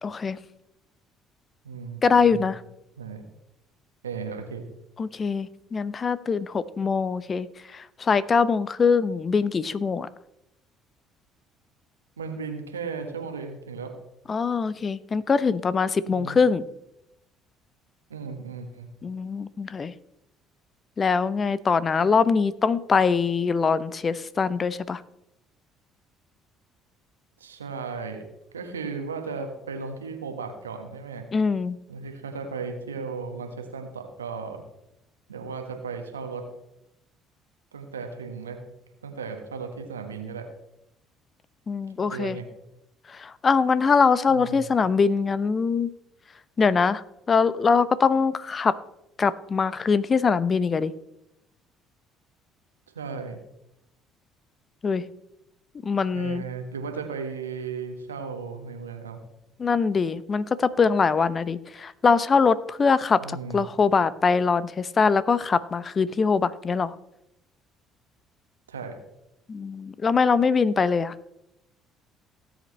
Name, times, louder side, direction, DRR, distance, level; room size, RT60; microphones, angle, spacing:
voice 1, 0.0-0.4 2.0-2.6 5.0-10.1 14.3-16.7 19.0-19.9 21.0-25.0 31.3-31.8 41.7-42.4 43.1-45.9 46.6-48.8 49.2-50.9 54.8-55.0 55.8-56.4 59.6-66.9 69.5-71.1, left 5 dB, 35° left, 18 dB, 0.7 m, -23 dB
voice 2, 1.6-2.5 3.0-3.2 4.0-4.7 12.2-14.0 16.1-16.4 18.1-18.9 27.4-28.3 28.5-31.3 31.9-34.6 35.3-36.5 37.7-38.6 39.0-40.5 42.1-42.5 44.3-44.7 52.9-53.4 56.1-59.2 63.2-63.6 68.7-69.0, right 5 dB, 90° right, 6 dB, 1.3 m, -35 dB
18.0 x 8.0 x 3.2 m, 0.85 s
hypercardioid pair, 55°, 0 cm